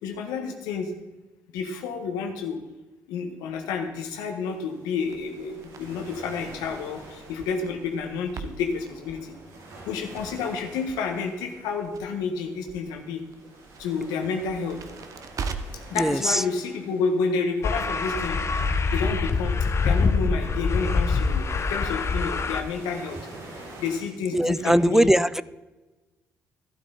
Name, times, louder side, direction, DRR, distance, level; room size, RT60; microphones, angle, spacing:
voice 1, 0.0-0.9 1.5-2.6 3.1-9.3 9.8-13.2 13.8-14.8 15.9-18.4 18.9-23.2 23.8-25.1, left 5 dB, 85° left, 4 dB, 1.5 m, -30 dB
sound 1, 4.1-24.0, right 2 dB, 75° right, 3.3 m, -48 dB
Crackle, 5.0-15.9, right 5 dB, 60° right, 0.9 m, -42 dB
voice 2, 16.0-16.4 24.3-25.4, right 1 dB, 5° right, 18 dB, 0.4 m, -20 dB
sound 2, 17.6-22.6, left 4 dB, 45° left, 0.9 m, -25 dB
12.5 x 12.0 x 4.1 m, 1.2 s
supercardioid pair, 55°, 7 cm